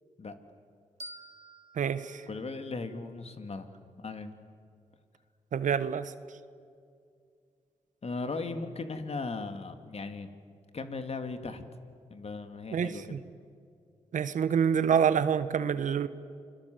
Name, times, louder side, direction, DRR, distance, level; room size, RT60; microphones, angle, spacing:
sound 1, 1.0-3.8, right 1 dB, 50° right, 2.8 m, -51 dB
voice 1, 1.8-2.2 5.5-6.1 12.7-13.2 14.1-16.1, right 7 dB, 70° right, 13 dB, 1.1 m, -27 dB
voice 2, 2.3-3.7 4.0-4.3 8.0-10.3 10.7-11.6 12.1-13.2, left 3 dB, 50° left, 7 dB, 2.5 m, -37 dB
29.0 x 21.5 x 7.9 m, 2.3 s
supercardioid pair, 50°, 14 cm